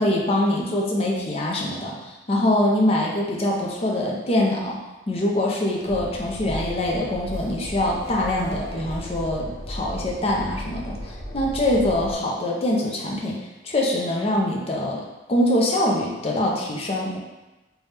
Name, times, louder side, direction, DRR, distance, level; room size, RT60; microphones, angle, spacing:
voice 1, 0.0-4.8 5.1-13.4 13.6-15.0 15.3-17.2, left 1 dB, 35° left, -2 dB, 0.5 m, -24 dB
Train, 5.8-12.2, equal, 50° right, 1.3 m, -35 dB
3.3 x 2.3 x 4.1 m, 1.1 s
head